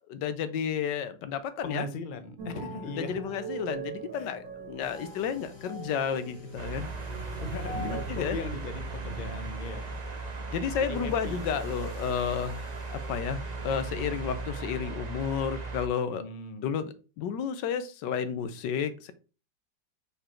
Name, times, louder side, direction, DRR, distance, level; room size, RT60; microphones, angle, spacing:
voice 1, 0.1-1.9 2.8-6.9 7.7-8.4 10.5-16.2 16.6-19.1, left 7 dB, 75° left, 12 dB, 1.3 m, -32 dB
voice 2, 1.6-3.2 4.1-4.3 7.4-9.9 10.9-11.4 16.1-16.7, left 3 dB, 45° left, 8 dB, 0.6 m, -39 dB
sound 1, 2.4-8.0, right 4 dB, 80° right, 2.4 m, -41 dB
sound 2, 4.8-14.4, right 1 dB, 20° left, 1.8 m, -45 dB
sound 3, 6.6-15.9, right 3 dB, 35° right, 0.7 m, -37 dB
5.1 x 4.7 x 4.4 m, 0.34 s
omnidirectional pair, 2.0 m